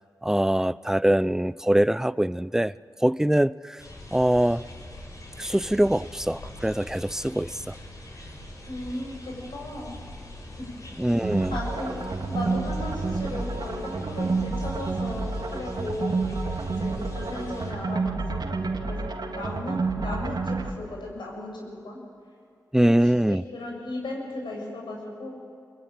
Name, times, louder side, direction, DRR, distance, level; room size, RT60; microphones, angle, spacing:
voice 1, 0.2-2.7 3.0-3.8 4.1-4.6 5.4-7.8 11.0-11.6 22.7-23.4, right 1 dB, 5° right, 19 dB, 0.6 m, -23 dB
sound 1, 3.8-17.7, left 1 dB, 45° left, 6.7 m, -43 dB
voice 2, 8.7-9.9 10.5-10.7 11.5-12.0 12.3-16.3 16.7-22.0 23.3-25.3, left 2 dB, 85° left, -1 dB, 7.2 m, -36 dB
sound 2, 11.2-20.7, right 3 dB, 60° right, 2.0 m, -29 dB
24.5 x 22.5 x 9.1 m, 2.4 s
cardioid pair, 45°, 8 cm